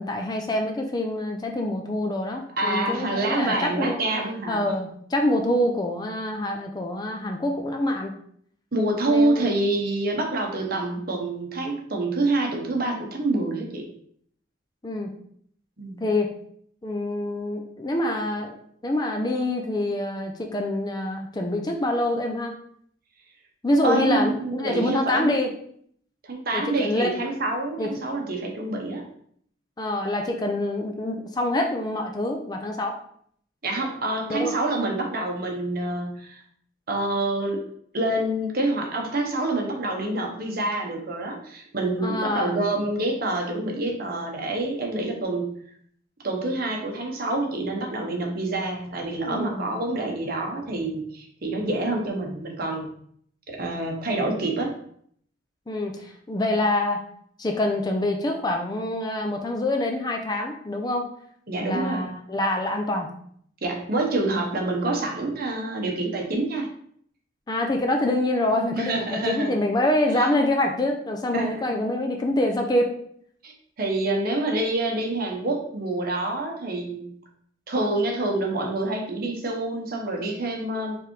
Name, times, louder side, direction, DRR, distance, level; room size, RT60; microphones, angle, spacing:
voice 1, 0.0-4.0 4.5-8.1 9.1-9.4 14.8-15.1 16.0-16.3 16.8-18.5 18.8-22.5 23.6-25.5 26.5-27.3 27.8-27.9 29.8-33.0 34.3-34.5 42.0-42.6 49.2-49.7 55.7-57.0 57.4-61.1 61.6-63.1 67.5-72.9, left 1 dB, 20° left, 2 dB, 0.4 m, -26 dB
voice 2, 2.6-4.8 8.7-13.9 15.8-16.0 23.8-25.4 26.2-29.0 33.6-36.4 36.9-37.6 37.9-45.5 46.2-52.9 53.5-54.7 61.5-62.1 63.6-66.7 68.7-69.6 70.2-70.3 71.3-71.6 73.4-77.1 77.7-81.0, right 2 dB, 50° right, 1 dB, 1.0 m, -27 dB
4.7 x 3.5 x 3.1 m, 0.64 s
head